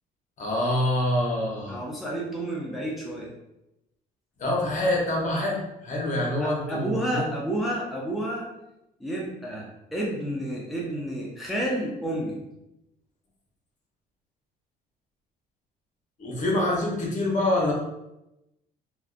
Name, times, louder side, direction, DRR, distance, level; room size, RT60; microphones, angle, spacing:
voice 1, 0.4-1.8 4.4-7.2 16.2-17.7, left 1 dB, 45° left, -2 dB, 0.8 m, -26 dB
voice 2, 1.7-3.3 6.4-8.5 9.0-12.4, right 1 dB, ahead, -4 dB, 0.5 m, -30 dB
2.5 x 2.1 x 2.4 m, 0.88 s
cardioid pair, 110°, 17 cm